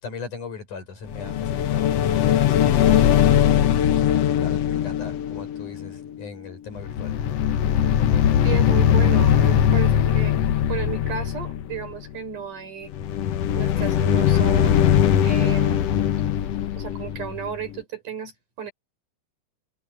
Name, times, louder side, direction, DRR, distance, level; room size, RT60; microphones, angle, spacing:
voice 1, 0.0-7.2, left 4 dB, 80° left, 7.6 m, -39 dB
sound 1, 1.1-6.4 6.7-12.0 12.9-17.8, left 10 dB, 65° left, 1.9 m, -20 dB
voice 2, 8.4-10.4 10.7-12.9 13.5-15.8 16.8-18.7, right 8 dB, 90° right, 6.9 m, -33 dB
omnidirectional pair, 3.5 m